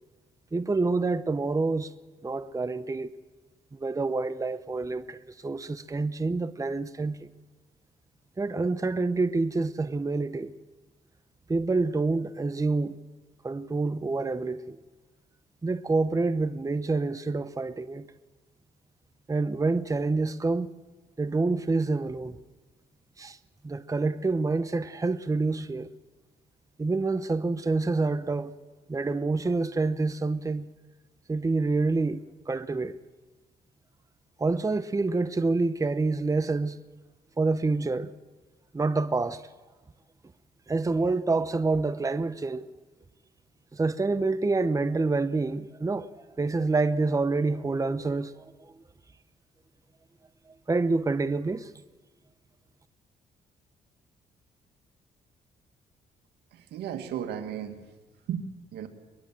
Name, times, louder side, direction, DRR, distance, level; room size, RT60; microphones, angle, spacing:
voice 1, 0.5-1.9 2.2-3.1 3.7-7.3 8.4-10.5 11.5-13.0 13.4-14.8 15.6-18.1 19.3-20.7 21.2-22.4 23.2-23.4 23.6-25.9 26.8-28.6 28.9-30.7 31.3-33.0 34.4-36.8 37.4-38.1 38.7-39.5 40.7-42.7 43.7-46.1 46.4-48.8 50.5-51.7, right 3 dB, 20° right, 0.9 m, -27 dB
voice 2, 56.5-57.8 58.3-58.9, right 9 dB, 85° right, 2.3 m, -35 dB
22.5 x 21.5 x 7.7 m
cardioid pair, 75°, 17 cm